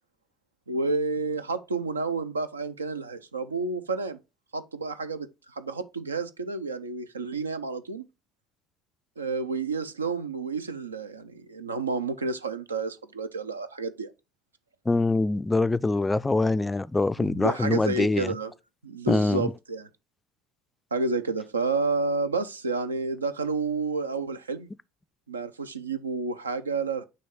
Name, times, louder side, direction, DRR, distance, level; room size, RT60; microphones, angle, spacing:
voice 1, 0.7-4.2 4.5-8.0 9.2-14.1 17.2-18.5 18.8-19.9 20.9-24.7 25.3-27.0, right 4 dB, 85° right, 0.4 m, -30 dB
voice 2, 14.9-18.3 19.1-19.5, left 2 dB, 15° left, 0.3 m, -24 dB
6.2 x 2.8 x 5.4 m
figure-of-eight pair, 60°, 0 cm